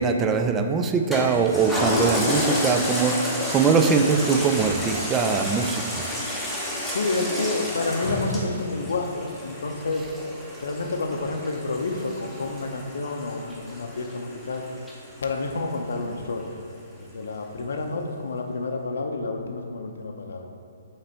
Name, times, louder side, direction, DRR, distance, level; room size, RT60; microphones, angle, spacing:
voice 1, 0.0-6.1, right 5 dB, 15° right, 6 dB, 0.3 m, -22 dB
Toilet flush, 1.1-15.9 16.4-16.5, left 1 dB, ahead, 0.8 m, -30 dB
voice 2, 6.8-10.1 10.6-14.6 15.2-16.5 17.0-20.5, left 3 dB, 75° left, 4 dB, 0.6 m, -29 dB
6.6 x 3.3 x 4.4 m, 2.7 s
hypercardioid pair, 145°, 0 cm